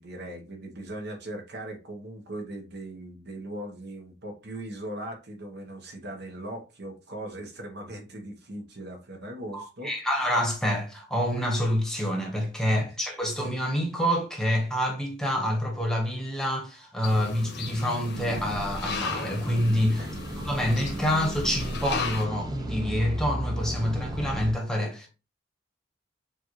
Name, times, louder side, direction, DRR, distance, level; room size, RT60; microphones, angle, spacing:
voice 1, 0.0-9.9 12.6-12.8 20.0-20.1, right 1 dB, 60° right, 1.1 m, -39 dB
voice 2, 9.5-20.1 20.4-25.1, equal, 5° left, 1.1 m, -27 dB
sound 1, 17.0-22.2, left 3 dB, 60° left, 0.9 m, -36 dB
sound 2, 18.1-24.5, equal, 20° right, 0.6 m, -35 dB
6.8 x 2.5 x 3.1 m
head